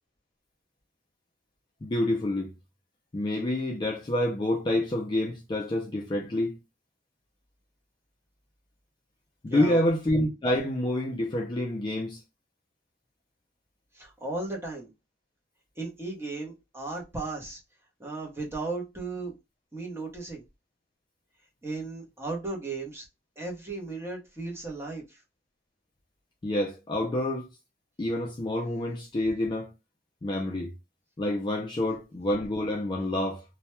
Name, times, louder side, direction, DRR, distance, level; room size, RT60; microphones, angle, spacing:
voice 1, 1.8-2.5 3.1-6.6 9.4-12.2 26.4-27.5 28.0-29.7 30.2-30.7 31.2-33.4, left 1 dB, 25° left, 0.3 m, -28 dB
voice 2, 9.5-9.8 13.9-14.9 15.8-17.6 18.0-19.3 19.7-20.4 21.6-23.1 23.4-25.2, right 3 dB, 15° right, 0.7 m, -35 dB
2.1 x 2.1 x 2.9 m
head